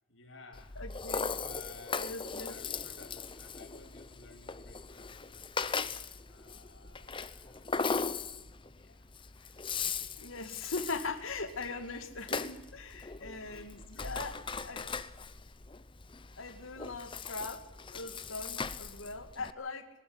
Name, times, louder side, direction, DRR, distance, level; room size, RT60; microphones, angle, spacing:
voice 1, 0.1-0.8 1.3-5.6 6.3-8.4 8.8-10.5 11.0-11.2 13.2-14.6, left 3 dB, 65° left, 5 dB, 3.3 m, -56 dB
Rattle (instrument), 0.5-19.5, left 5 dB, 25° left, 0.8 m, -39 dB
voice 2, 0.8-1.4 2.0-2.5 10.2-14.9 16.4-17.6 17.9-19.9, left 3 dB, 80° left, 8 dB, 2.3 m, -40 dB
23.0 x 13.0 x 9.8 m, 0.97 s
head